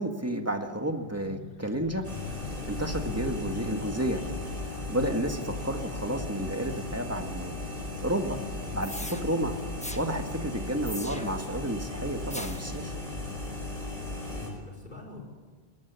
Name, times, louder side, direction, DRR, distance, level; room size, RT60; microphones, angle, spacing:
voice 1, 0.0-2.1 2.7-4.4 4.9-7.5 8.0-8.4 8.7-9.6 9.9-12.9, right 1 dB, 15° right, 5 dB, 1.8 m, -31 dB
sound 1, 0.8-6.3, left 6 dB, 60° left, 1.1 m, -42 dB
sound 2, 2.0-14.5, left 2 dB, 35° right, 4.7 m, -36 dB
sound 3, 8.8-9.2 9.8-10.0 10.8-11.5 12.3-12.7, left 1 dB, 5° left, 1.2 m, -39 dB
voice 2, 14.0-15.2, left 3 dB, 45° left, 1 dB, 5.2 m, -46 dB
20.5 x 18.0 x 8.3 m, 1.5 s
omnidirectional pair, 1.1 m